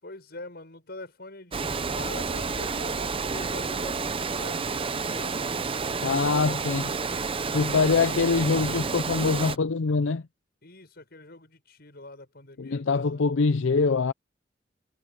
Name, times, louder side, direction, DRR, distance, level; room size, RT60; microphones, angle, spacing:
voice 1, 0.0-5.4 6.0-7.7 10.6-13.2, left 2 dB, 55° left, 7.2 m, -44 dB
Water, 1.5-9.6, right 4 dB, 30° right, 0.7 m, -30 dB
voice 2, 6.0-6.9 7.5-10.2 12.6-14.1, left 4 dB, 85° left, 0.5 m, -24 dB
head